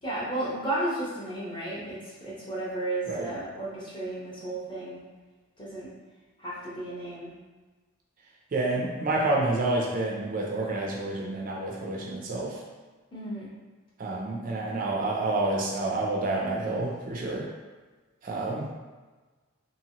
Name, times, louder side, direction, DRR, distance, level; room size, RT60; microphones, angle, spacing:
voice 1, 0.0-5.0 5.6-5.9 6.4-7.3 13.1-13.5, right 1 dB, 25° left, -7 dB, 0.8 m, -33 dB
voice 2, 8.5-12.6 14.0-17.5 18.2-18.7, right 2 dB, 40° right, -2 dB, 0.3 m, -29 dB
2.9 x 2.7 x 2.8 m, 1.3 s
head